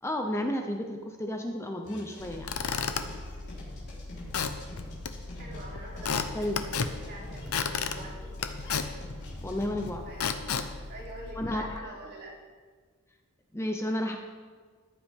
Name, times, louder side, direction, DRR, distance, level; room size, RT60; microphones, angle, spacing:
voice 1, 0.0-2.5 6.3-6.6 9.4-10.0 11.4-12.0 13.5-14.2, left 1 dB, 10° left, 3 dB, 0.7 m, -32 dB
sound 1, 1.8-9.9, left 1 dB, 50° left, 4.1 m, -46 dB
Squeak / Wood, 2.2-11.8, left 5 dB, 85° left, 0.8 m, -34 dB
voice 2, 5.4-8.4 10.0-12.3, right 1 dB, 50° right, -5 dB, 3.5 m, -46 dB
14.5 x 11.0 x 3.7 m, 1.5 s
head